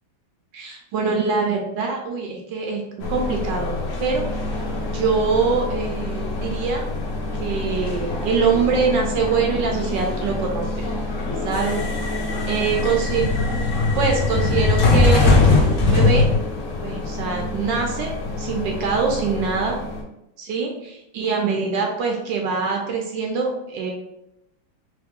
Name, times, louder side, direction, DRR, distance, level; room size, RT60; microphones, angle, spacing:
voice 1, 0.5-2.8 3.1-3.7 4.0-4.3 4.9-6.8 7.4-10.8 11.4-11.8 12.5-13.2 13.9-16.3 16.8-19.8 20.4-23.9, right 5 dB, 75° right, 1 dB, 1.2 m, -24 dB
sound 1, 3.0-20.0, left 3 dB, 65° left, 0.7 m, -23 dB
3.3 x 3.2 x 3.4 m, 0.85 s
omnidirectional pair, 2.2 m